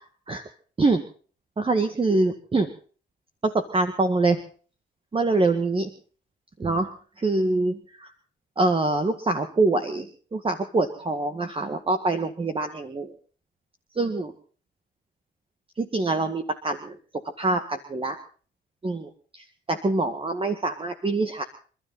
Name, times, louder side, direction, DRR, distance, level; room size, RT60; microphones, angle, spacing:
voice 1, 1.6-2.7 3.5-4.4 5.1-5.9 6.6-6.9 7.2-7.7 8.6-13.1 14.0-14.3 15.8-16.9 17.4-18.2 18.8-21.4, right 3 dB, 25° right, 6 dB, 1.9 m, -24 dB
28.0 x 12.5 x 4.1 m, 0.42 s
cardioid pair, 90°, 20 cm